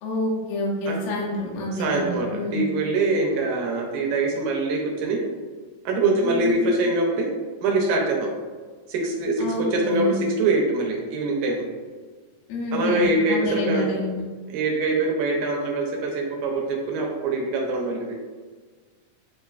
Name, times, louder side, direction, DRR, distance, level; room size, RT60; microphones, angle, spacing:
voice 1, 0.0-2.6 6.2-6.8 9.4-10.2 12.5-14.2, left 1 dB, 75° left, -4 dB, 2.5 m, -28 dB
voice 2, 1.8-5.2 5.9-7.3 7.6-8.3 8.9-11.7 12.7-13.9 14.5-18.2, right 2 dB, 75° right, 0 dB, 1.9 m, -24 dB
7.4 x 2.6 x 2.4 m, 1.5 s
omnidirectional pair, 4.0 m